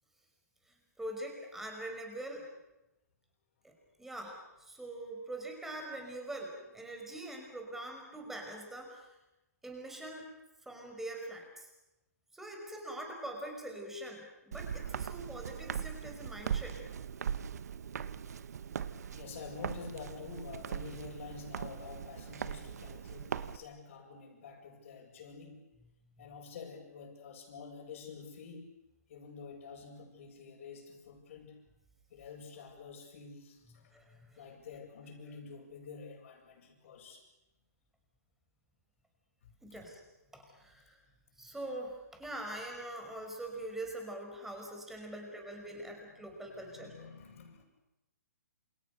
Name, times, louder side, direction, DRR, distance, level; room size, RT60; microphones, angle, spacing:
voice 1, 1.0-2.5 3.6-9.1 9.6-10.3 10.7-11.7 12.3-16.8 26.2-26.3 33.9-34.4 39.6-40.0 40.3-41.0 41.4-46.9, right 1 dB, 5° right, 2 dB, 5.6 m, -43 dB
Walk footsteps, 14.5-23.6, right 7 dB, 65° right, 1.4 m, -40 dB
voice 2, 19.1-25.6 26.2-28.7 29.1-31.6 32.1-33.9 34.4-37.2 39.4-39.5 39.8-39.9 45.2-45.3 45.6-47.6, left 5 dB, 55° left, -6 dB, 6.8 m, -49 dB
28.5 x 27.5 x 6.8 m, 0.98 s
hypercardioid pair, 155°, 9 cm